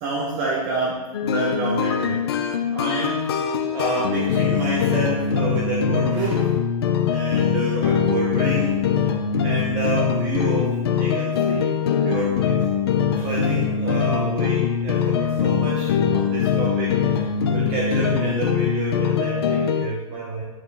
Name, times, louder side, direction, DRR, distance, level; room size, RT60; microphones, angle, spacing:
voice 1, 0.0-2.2 2.7-3.2 3.7-6.6 7.0-8.7 9.0-9.1 9.4-11.7 12.0-12.6 13.1-20.4, right 3 dB, 25° right, -4 dB, 0.9 m, -29 dB
sound 1, 1.1-19.9, left 7 dB, 45° left, 0.6 m, -22 dB
9.6 x 4.4 x 3.5 m, 1.2 s
hypercardioid pair, 170°, 18 cm